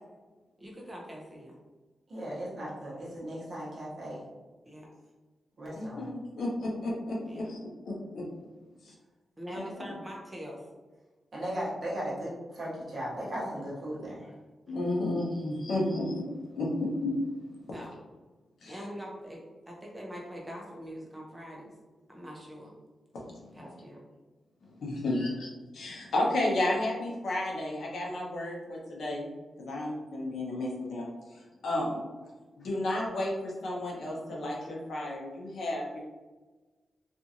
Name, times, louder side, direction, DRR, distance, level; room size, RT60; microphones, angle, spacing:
voice 1, 0.6-1.6 4.7-4.9 7.2-7.5 9.4-10.7 14.7-15.5 15.9-16.0 17.7-18.0 18.7-21.7 22.1-22.7 23.5-24.0, equal, 10° right, -3 dB, 0.5 m, -43 dB
voice 2, 2.1-4.3 5.6-6.1 11.3-14.3, equal, 40° right, -6 dB, 0.9 m, -37 dB
voice 3, 5.8-7.5 7.8-8.2 8.8-8.9 9.8-9.9 14.7-16.2 16.5-17.2 18.6-18.8 23.1-23.4 24.8-25.5 25.7-29.3 29.6-32.1 32.6-36.0, left 1 dB, 70° left, -3 dB, 0.7 m, -32 dB
2.8 x 2.5 x 2.5 m, 1.3 s
wide cardioid pair, 180°, 0 cm